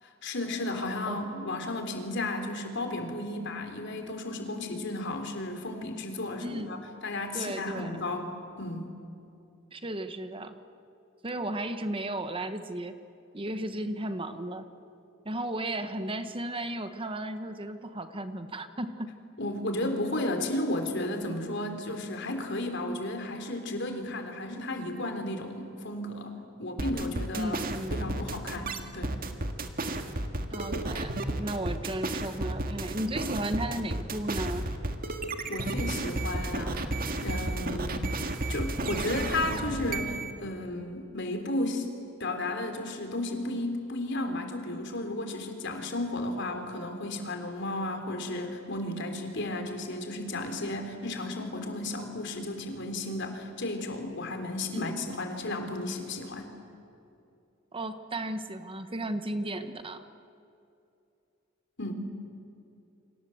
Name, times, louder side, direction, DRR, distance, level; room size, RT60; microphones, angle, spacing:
voice 1, 0.0-8.9 19.4-26.3 26.6-27.6 27.9-29.2 35.5-37.0 37.2-38.1 38.5-41.9 42.2-56.5 61.8-61.9, left 2 dB, 60° left, 6 dB, 3.7 m, -33 dB
voice 2, 6.4-6.8 7.3-8.0 9.7-10.6 11.2-13.0 13.3-14.7 15.2-19.1 27.3-28.1 30.5-34.7 54.7-54.9 57.7-60.0, right 1 dB, 25° right, 9 dB, 1.2 m, -34 dB
sound 1, 26.8-40.3, right 2 dB, 45° right, 1.9 m, -32 dB
29.5 x 25.5 x 7.9 m, 2.6 s
head